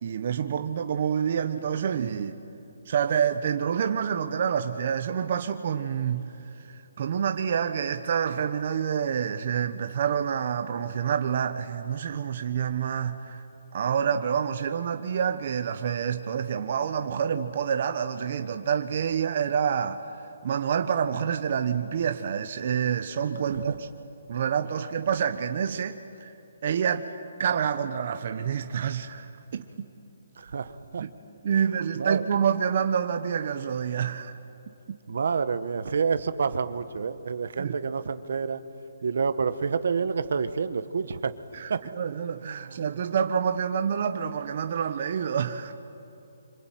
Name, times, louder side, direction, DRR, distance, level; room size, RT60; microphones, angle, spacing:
voice 1, 0.0-2.4 2.9-6.3 6.6-13.4 13.7-20.1 20.4-23.9 24.3-26.3 26.6-27.1 27.4-29.8 31.0-31.1 31.4-34.4 37.6-37.8 41.5-45.7, right 7 dB, 45° right, 7 dB, 1.1 m, -27 dB
voice 2, 30.4-31.0 32.0-32.2 35.1-38.6 39.0-41.3 41.7-41.8 42.4-42.8, right 5 dB, 65° right, 12 dB, 1.2 m, -28 dB
26.0 x 25.0 x 9.2 m, 3.0 s
hypercardioid pair, 160°, 0 cm